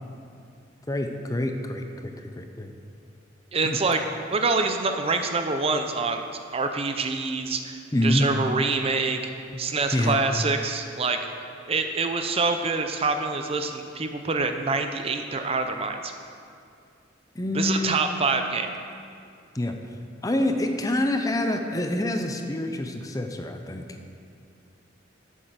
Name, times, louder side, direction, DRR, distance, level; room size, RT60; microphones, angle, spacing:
voice 1, 0.9-2.7 3.6-3.8 7.9-8.3 9.5-9.6 9.9-10.2 17.3-17.9 19.5-19.8 20.2-23.9, left 1 dB, 20° left, 5 dB, 0.6 m, -26 dB
voice 2, 3.5-4.0 4.3-9.2 9.6-11.2 11.7-16.1 17.5-18.7, right 4 dB, 30° right, 6 dB, 0.5 m, -26 dB
9.1 x 7.3 x 6.8 m, 2.4 s
head